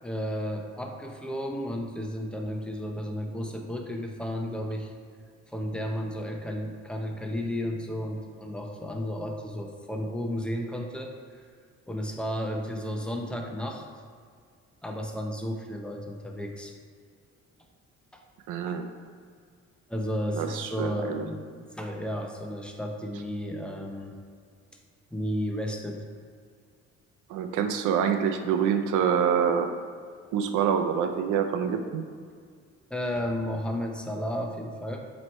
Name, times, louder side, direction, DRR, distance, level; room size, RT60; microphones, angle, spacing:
voice 1, 0.0-4.9 5.5-11.4 11.9-13.9 14.8-16.7 18.1-18.2 18.6-18.8 19.9-24.1 25.1-26.1 32.9-35.0, equal, 5° left, 1 dB, 0.8 m, -33 dB
voice 2, 18.5-18.9 20.3-21.2 27.3-29.8 30.3-32.0, right 7 dB, 85° right, 6 dB, 0.5 m, -26 dB
7.5 x 3.1 x 4.3 m, 2.1 s
cardioid pair, 90°, 30 cm